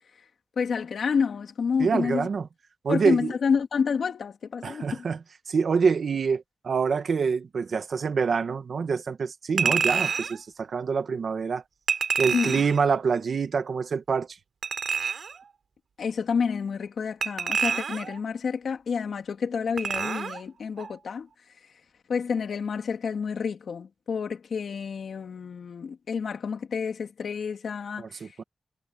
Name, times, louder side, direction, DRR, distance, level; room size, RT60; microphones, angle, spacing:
voice 1, 0.6-2.3 2.9-5.1 12.3-12.6 16.0-21.3 22.1-28.2, left 6 dB, 90° left, 3.0 m, -29 dB
voice 2, 1.8-2.5 2.8-3.3 4.6-5.2 5.5-11.6 12.2-14.3 28.0-28.4, right 5 dB, 70° right, 1.5 m, -26 dB
Chink clink, 9.6-10.4 11.9-12.8 14.6-15.4 17.2-18.2 19.8-20.4 20.8-20.9, right 6 dB, 90° right, 3.7 m, -27 dB
wide cardioid pair, 150°, 0 cm